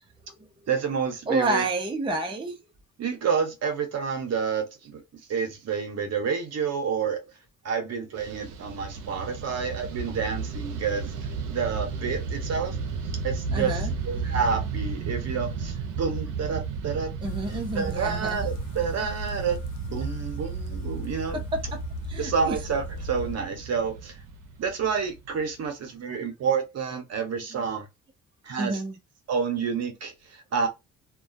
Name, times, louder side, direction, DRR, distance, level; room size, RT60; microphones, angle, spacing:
voice 1, 0.7-1.7 3.0-5.0 5.3-7.2 7.6-11.1 11.5-12.8 13.2-17.1 17.5-19.6 19.8-21.4 22.2-24.2 24.6-27.8 28.4-28.8 29.3-30.7, right 6 dB, 60° right, 0.9 m, -29 dB
voice 2, 1.3-2.6 13.5-13.9 17.2-18.4 20.0-20.1 21.3-21.8 22.1-22.6 28.6-29.0, right 2 dB, 15° right, 0.5 m, -29 dB
Fixed-wing aircraft airplane, 8.2-25.6, right 5 dB, 80° right, 0.6 m, -34 dB
sound 1, 17.2-23.4, equal, 80° left, 0.6 m, -37 dB
2.2 x 2.2 x 2.5 m
cardioid pair, 90°, 30 cm